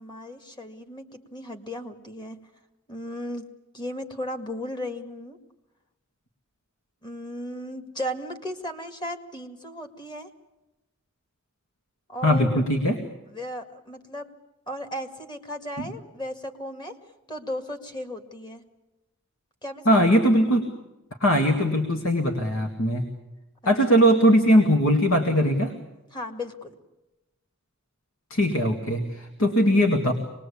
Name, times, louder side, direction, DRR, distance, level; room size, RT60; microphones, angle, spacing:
voice 1, 0.0-2.5 2.9-3.5 3.7-5.4 7.0-10.3 12.1-12.6 13.3-14.3 14.7-17.0 17.3-18.6 19.6-20.2 23.9-24.0 26.1-26.8, equal, 20° left, 7 dB, 1.9 m, -35 dB
voice 2, 12.2-13.0 15.8-15.9 19.9-20.7 21.2-23.1 23.7-25.7 28.3-30.1, equal, 75° left, 4 dB, 2.2 m, -20 dB
25.5 x 20.5 x 8.6 m, 0.99 s
head